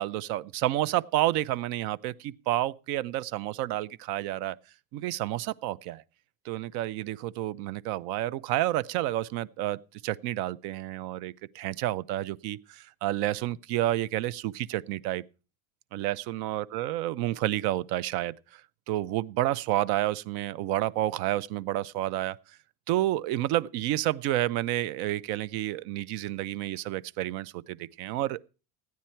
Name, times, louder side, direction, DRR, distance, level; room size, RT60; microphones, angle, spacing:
voice 1, 0.0-4.6 4.9-6.0 6.4-15.2 15.9-18.3 18.9-22.4 22.9-28.5, right 14 dB, 75° right, 0.6 m, -30 dB
14.5 x 9.5 x 4.4 m
cardioid pair, 175°, 37 cm